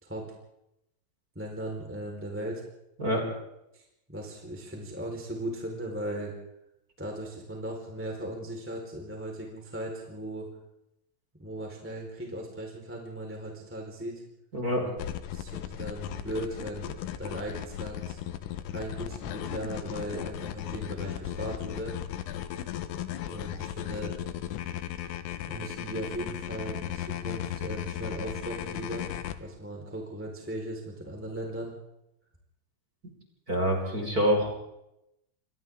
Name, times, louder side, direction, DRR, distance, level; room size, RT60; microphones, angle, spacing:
voice 1, 1.3-2.6 3.7-6.3 7.0-10.5 11.4-14.2 14.8-15.0 15.3-18.2 18.7-21.9 23.3-24.1 25.5-29.1 29.4-31.7, right 1 dB, 5° right, -1 dB, 3.5 m, -37 dB
voice 2, 14.5-14.8 33.5-34.5, equal, 20° right, 0 dB, 4.8 m, -26 dB
sound 1, 15.0-29.3, left 11 dB, 85° left, 3.8 m, -36 dB
29.5 x 24.0 x 3.8 m, 0.85 s
omnidirectional pair, 6.0 m